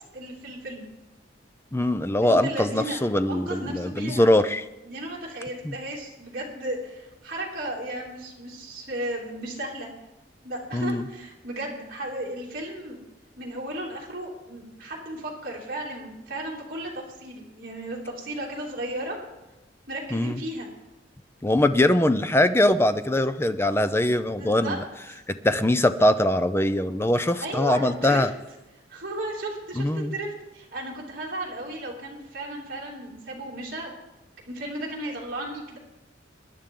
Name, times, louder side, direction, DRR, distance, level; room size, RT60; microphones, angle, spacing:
voice 1, 0.1-0.9 2.2-3.0 3.3-4.3 4.8-9.9 10.4-13.0 13.4-19.2 19.9-20.7 24.1-24.8 25.1-25.2 27.4-28.2 28.9-30.3 30.5-33.9 34.5-35.8, right 1 dB, 50° right, -3 dB, 2.8 m, -34 dB
voice 2, 1.7-4.6 5.6-5.7 10.7-11.1 20.1-20.4 21.4-24.8 25.3-28.3 29.8-30.2, left 1 dB, 15° left, 11 dB, 0.5 m, -22 dB
23.5 x 10.5 x 3.8 m, 1.0 s
head